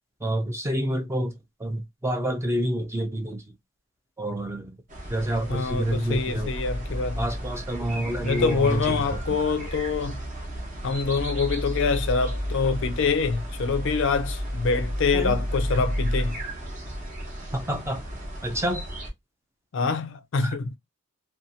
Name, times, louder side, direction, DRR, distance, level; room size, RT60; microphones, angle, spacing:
voice 1, 0.2-3.4 4.2-4.8 5.1-6.5 7.2-9.4 15.1-15.4 17.5-18.1 18.4-18.9 20.4-20.6, right 1 dB, 15° right, 0.4 m, -28 dB
sound 1, 4.9-19.1, equal, 40° right, 0.8 m, -32 dB
voice 2, 5.5-7.2 7.9-10.2 10.8-16.4 19.7-20.8, left 4 dB, 60° left, 0.4 m, -25 dB
2.6 x 2.2 x 2.6 m
head